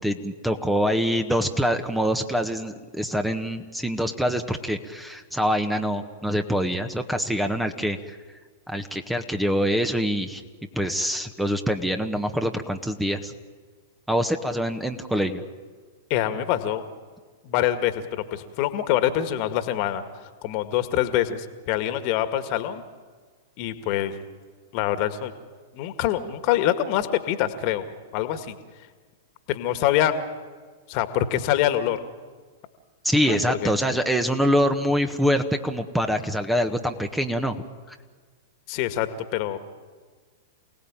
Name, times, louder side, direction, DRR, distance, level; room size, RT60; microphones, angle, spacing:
voice 1, 0.0-8.2 8.7-10.4 10.7-13.3 14.1-15.4 33.0-37.6, equal, 5° right, 7 dB, 1.5 m, -25 dB
voice 2, 16.1-16.8 17.4-20.0 20.4-22.8 23.6-24.1 24.7-25.3 25.7-27.9 28.1-28.6 29.5-30.1 30.9-32.0 33.3-33.7 38.7-39.6, left 12 dB, 45° left, 10 dB, 2.0 m, -25 dB
28.5 x 18.0 x 9.0 m, 1.5 s
figure-of-eight pair, 100°, 0 cm